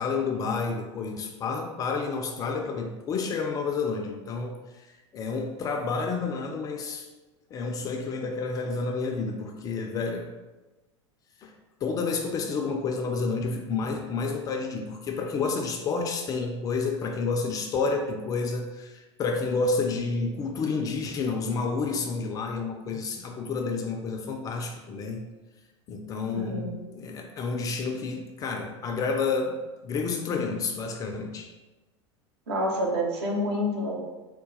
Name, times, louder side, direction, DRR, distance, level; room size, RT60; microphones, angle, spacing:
voice 1, 0.0-7.1 7.5-10.3 11.4-11.5 11.8-25.2 25.9-31.5, left 4 dB, 25° left, 3 dB, 0.4 m, -30 dB
voice 2, 26.3-26.8 32.5-34.0, equal, 60° right, -2 dB, 0.9 m, -28 dB
3.8 x 2.2 x 3.9 m, 1.2 s
figure-of-eight pair, 85°, 15 cm